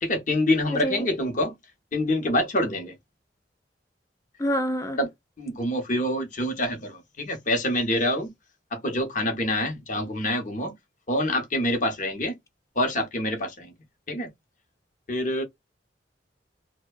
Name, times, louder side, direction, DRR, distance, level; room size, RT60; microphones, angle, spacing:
voice 1, 0.0-1.5 1.9-2.9 5.0-5.1 5.4-8.3 8.7-10.7 11.1-12.3 12.8-13.7 14.1-14.3 15.1-15.4, left 1 dB, 45° left, 0.8 m, -26 dB
voice 2, 4.4-5.0, equal, 15° left, 0.4 m, -26 dB
2.6 x 2.1 x 2.2 m
head